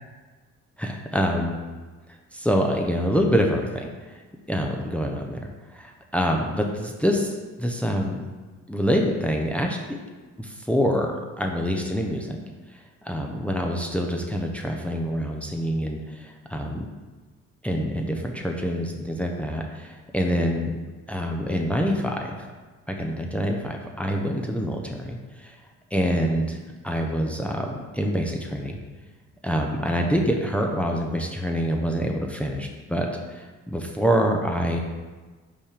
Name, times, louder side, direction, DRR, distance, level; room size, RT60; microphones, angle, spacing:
voice 1, 0.8-1.6 2.3-3.9 4.5-7.3 7.6-8.3 8.7-9.9 10.4-12.4 13.0-16.9 17.6-20.8 21.1-22.4 22.9-25.5 25.9-26.6 26.8-28.8 29.4-34.8, equal, 5° left, 1 dB, 0.6 m, -26 dB
5.4 x 3.6 x 4.9 m, 1.3 s
cardioid pair, 90°, 30 cm